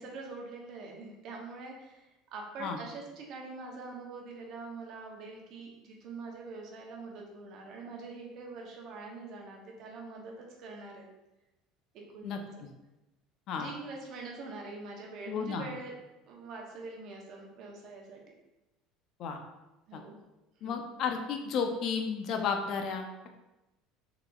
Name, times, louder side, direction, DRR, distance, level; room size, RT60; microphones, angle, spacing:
voice 1, 0.0-11.1 11.9-12.7 13.5-15.9 16.3-18.3 19.9-20.2 20.6-20.7, right 3 dB, 55° right, 0 dB, 0.8 m, -44 dB
voice 2, 15.3-15.7 19.2-19.4 19.9-20.0 20.6-23.3, left 6 dB, 55° left, 4 dB, 0.5 m, -33 dB
3.8 x 2.8 x 2.3 m, 0.99 s
supercardioid pair, 110°, 0 cm